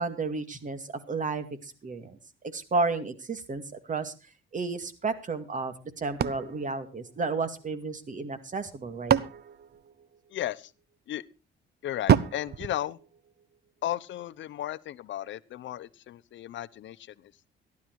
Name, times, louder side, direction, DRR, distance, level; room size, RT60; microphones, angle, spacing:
voice 1, 0.0-2.2 2.5-4.1 4.5-9.2, right 3 dB, 40° right, 2.3 m, -32 dB
sound 1, 6.2-7.7 8.6-10.6 12.1-13.7, right 9 dB, 55° right, 0.8 m, -29 dB
voice 2, 10.3-10.7 11.1-11.3 11.8-13.0 13.8-17.3, left 12 dB, 70° left, 0.8 m, -35 dB
15.0 x 11.5 x 4.7 m
cardioid pair, 90°, 20 cm